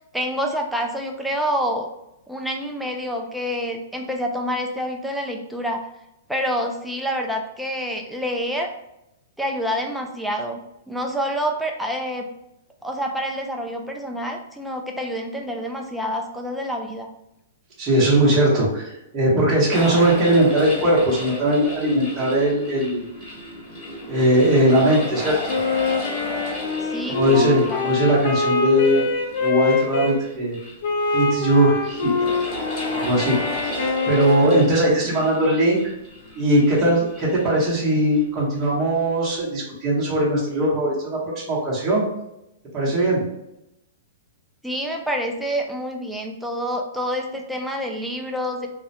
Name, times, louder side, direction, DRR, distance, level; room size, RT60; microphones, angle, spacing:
voice 1, 0.1-1.9 2.3-5.8 6.3-8.7 9.4-10.6 10.9-12.3 12.8-17.1 26.8-28.0 44.6-48.7, equal, ahead, 2 dB, 0.3 m, -27 dB
voice 2, 17.8-23.0 24.1-25.6 27.1-29.0 29.4-30.6 31.1-32.1 32.9-33.4 33.8-35.9 36.3-42.0 42.7-43.2, right 1 dB, 20° right, -7 dB, 0.9 m, -19 dB
sound 1, 19.7-38.3, left 1 dB, 25° left, 1.4 m, -34 dB
Wind instrument woodwind instrument, 25.5-30.2 30.8-34.8, left 4 dB, 65° left, 0.4 m, -24 dB
2.2 x 2.1 x 2.7 m, 0.85 s
hypercardioid pair, 145°, 0 cm